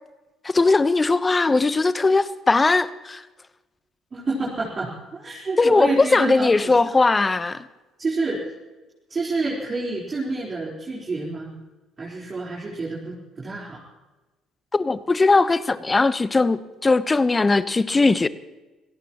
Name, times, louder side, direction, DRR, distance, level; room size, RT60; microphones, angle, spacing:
voice 1, 0.4-3.2 5.6-7.6 14.7-18.3, left 3 dB, 25° left, 1.0 m, -19 dB
voice 2, 4.1-7.0 8.0-8.5 9.1-11.6 12.0-13.8, right 3 dB, 35° right, 4.1 m, -28 dB
26.5 x 17.5 x 3.0 m
hypercardioid pair, 55°, 0 cm